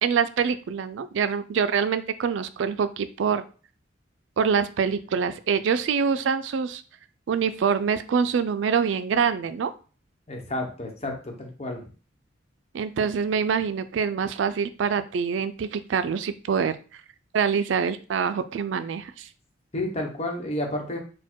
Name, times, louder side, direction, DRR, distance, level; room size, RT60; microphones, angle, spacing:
voice 1, 0.0-3.4 4.4-6.8 7.3-9.7 12.7-16.8 17.3-19.3, right 6 dB, 90° right, 12 dB, 0.4 m, -25 dB
voice 2, 10.3-11.8 19.7-21.0, left 1 dB, 35° left, 2 dB, 1.0 m, -31 dB
4.3 x 2.2 x 4.5 m, 0.38 s
head